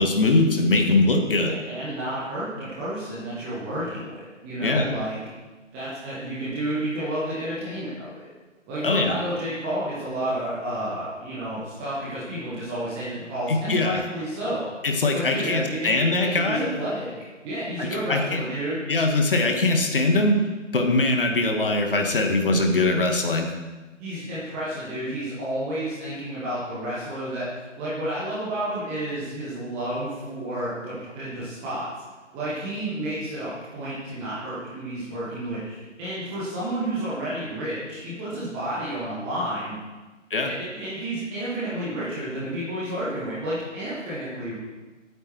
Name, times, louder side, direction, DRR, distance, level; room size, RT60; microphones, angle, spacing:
voice 1, 0.0-1.5 4.6-4.9 8.8-9.2 13.5-14.0 14.8-16.7 17.8-18.4 18.9-20.4 20.7-23.5 40.3-40.5, left 2 dB, 45° left, 3 dB, 2.0 m, -22 dB
voice 2, 1.3-5.2 5.7-8.3 8.7-14.7 15.1-18.8 24.0-27.5 27.8-31.9 32.3-39.8 40.4-44.5, right 1 dB, 5° right, -10 dB, 0.9 m, -31 dB
21.5 x 9.0 x 4.7 m, 1.2 s
figure-of-eight pair, 145°, 37 cm